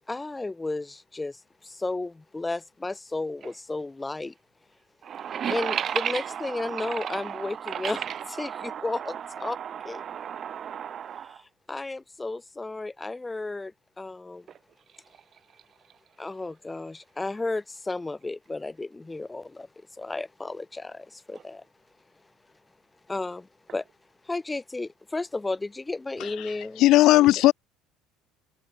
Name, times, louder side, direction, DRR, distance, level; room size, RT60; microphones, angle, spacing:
voice 1, 0.1-4.3 5.5-8.0 8.3-9.6 9.8-10.0 11.7-14.5 16.2-19.7 20.0-21.6 23.1-23.8 24.2-26.8 27.1-27.3, left 2 dB, 15° left, 0.9 m, -33 dB
voice 2, 5.0-11.4, right 8 dB, 45° right, 0.7 m, -33 dB
voice 3, 26.2-26.5 26.8-27.5, left 16 dB, 65° left, 0.6 m, -18 dB
supercardioid pair, 100°, 0 cm